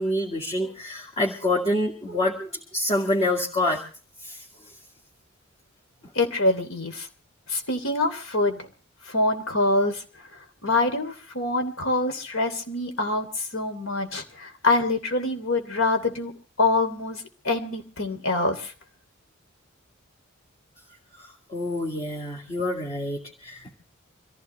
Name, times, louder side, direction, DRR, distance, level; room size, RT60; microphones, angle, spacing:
voice 1, 0.0-2.5 2.7-3.8 4.2-4.4 21.5-23.7, left 1 dB, 30° left, 0 dB, 2.3 m, -26 dB
voice 2, 6.1-7.1 7.5-8.7 9.1-10.0 10.6-16.3 16.6-18.7, left 2 dB, 80° left, 7 dB, 3.1 m, -25 dB
25.5 x 15.5 x 3.3 m, 0.38 s
head